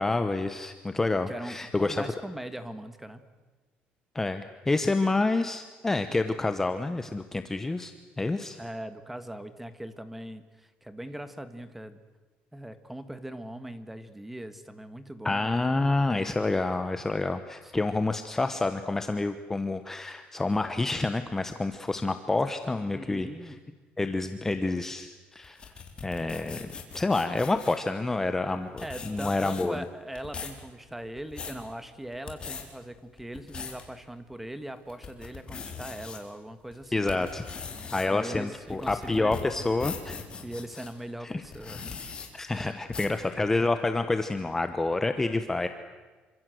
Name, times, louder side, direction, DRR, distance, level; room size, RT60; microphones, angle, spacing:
voice 1, 0.0-2.0 4.1-8.6 15.2-23.5 24.0-25.6 26.0-29.8 36.9-37.4 37.9-40.2 41.2-41.4 42.3-45.7, left 2 dB, 10° left, 9 dB, 1.0 m, -28 dB
voice 2, 1.2-3.3 8.6-12.0 12.5-15.6 17.6-17.7 22.9-23.7 28.8-37.3 37.8-39.7 40.4-42.1 42.5-42.8 43.1-43.4, right 1 dB, 5° right, 11 dB, 1.7 m, -40 dB
sound 1, 25.4-27.8 28.5-28.6 28.8-29.8 30.1-30.6 31.1-31.6 32.1-32.6 33.2-33.8 34.3-34.4 34.9-36.2 36.7-40.9 41.4-42.3 42.9-43.2, left 5 dB, 25° left, 3.9 m, -40 dB
27.5 x 25.5 x 7.9 m, 1.3 s
cardioid pair, 160°, 4 cm